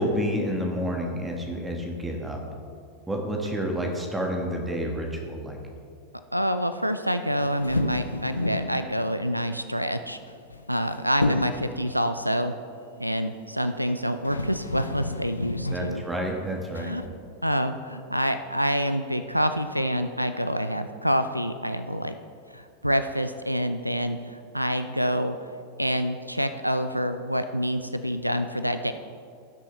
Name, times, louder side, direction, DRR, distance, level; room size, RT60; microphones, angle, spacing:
voice 1, 0.0-2.4 3.1-5.6 15.7-16.9, equal, 10° right, 1 dB, 1.5 m, -29 dB
voice 2, 6.3-10.2 10.7-12.6 13.0-16.0 16.8-17.0 17.4-22.2 22.5-25.4 25.8-28.9, equal, 90° right, 10 dB, 0.4 m, -27 dB
sound 1, 7.4-8.8 10.3-10.9 11.2-11.7 13.8-13.9 14.2-15.9 16.8-17.1, left 2 dB, 80° left, 0.5 m, -31 dB
17.5 x 6.2 x 3.2 m, 2.3 s
figure-of-eight pair, 90°, 0 cm